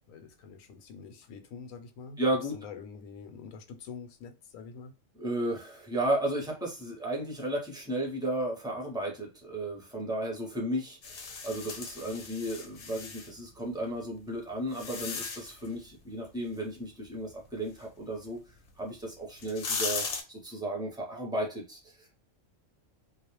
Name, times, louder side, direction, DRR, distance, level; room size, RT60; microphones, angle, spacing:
voice 1, 0.1-2.2 2.5-4.9, left 5 dB, 90° left, 1.0 m, -46 dB
voice 2, 2.2-2.6 5.2-18.4 18.8-22.1, right 1 dB, 5° right, 0.6 m, -34 dB
sound 1, 11.0-13.3 14.1-15.7 18.7-18.8 19.3-20.2, left 5 dB, 65° left, 0.9 m, -37 dB
2.4 x 2.1 x 3.0 m
omnidirectional pair, 1.3 m